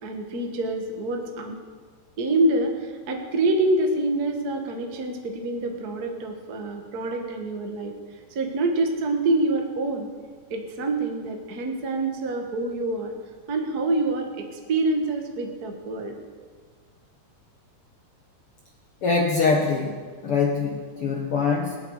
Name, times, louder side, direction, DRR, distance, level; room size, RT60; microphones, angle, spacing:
voice 1, 0.0-1.6 2.2-8.0 8.3-10.1 10.5-13.1 13.5-16.2, right 2 dB, 50° right, 3 dB, 1.1 m, -26 dB
voice 2, 19.0-21.8, left 4 dB, 65° left, 0 dB, 1.4 m, -24 dB
24.5 x 8.3 x 4.8 m, 1.5 s
omnidirectional pair, 4.1 m